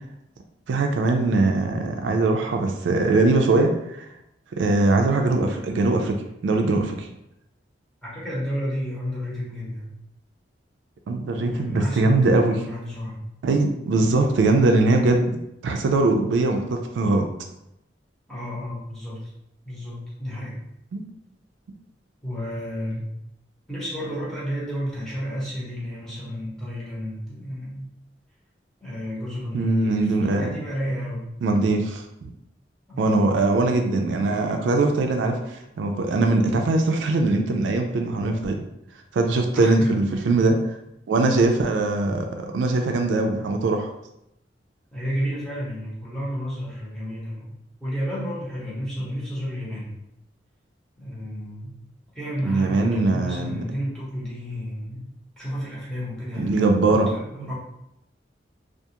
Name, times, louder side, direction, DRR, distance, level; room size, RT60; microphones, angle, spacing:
voice 1, 0.7-4.1 4.6-6.2 6.4-7.1 11.1-12.6 13.4-15.3 15.6-17.2 20.9-21.0 29.5-30.5 31.4-32.3 33.0-38.6 39.1-40.6 41.1-43.9 52.4-53.6 56.4-57.5, right 3 dB, 80° right, 4 dB, 0.3 m, -21 dB
voice 2, 8.0-9.9 11.4-13.2 18.3-19.3 19.6-20.6 22.2-23.0 23.7-27.9 28.8-31.3 32.9-33.3 39.5-40.0 41.1-41.5 44.9-47.5 47.8-50.0 51.0-51.8 52.1-56.7 57.1-57.5, equal, 5° left, -9 dB, 0.9 m, -31 dB
2.4 x 2.3 x 2.8 m, 0.81 s
head